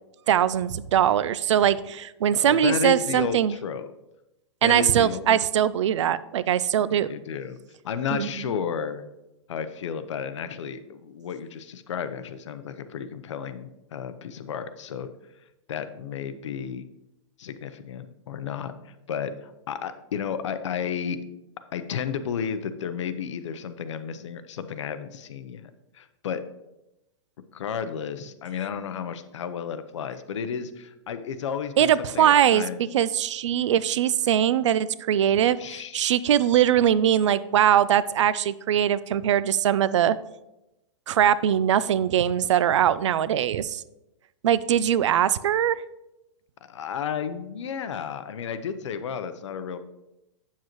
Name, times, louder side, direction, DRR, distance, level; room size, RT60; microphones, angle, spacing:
voice 1, 0.3-3.5 4.6-7.1 8.1-8.3 31.8-40.2 41.1-43.8 44.4-45.8, right 10 dB, 75° right, 17 dB, 0.4 m, -21 dB
voice 2, 2.3-3.8 4.6-5.4 6.9-7.6 7.8-9.0 9.5-15.1 15.7-16.8 17.4-21.2 21.7-26.4 27.5-32.9 35.6-36.2 46.6-49.8, left 7 dB, 75° left, 11 dB, 0.7 m, -32 dB
8.0 x 7.4 x 3.0 m, 0.92 s
supercardioid pair, 175°, 15 cm